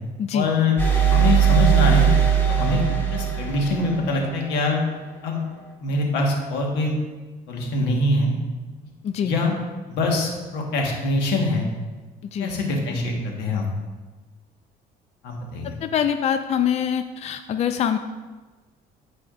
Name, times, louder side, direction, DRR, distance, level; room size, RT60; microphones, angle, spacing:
voice 1, 0.3-0.8 1.1-2.1 2.5-2.8 3.1-4.8 5.2-5.4 5.8-6.9 7.5-8.3 9.2-9.5 9.9-11.7 12.4-13.7 15.2-15.8, left 2 dB, 85° left, 0 dB, 1.5 m, -23 dB
sound 1, 0.8-4.5, right 8 dB, 10° left, 1.5 m, -19 dB
voice 2, 15.8-18.0, left 8 dB, 40° left, 8 dB, 0.4 m, -24 dB
13.5 x 4.9 x 2.5 m, 1.3 s
cardioid pair, 110°, 17 cm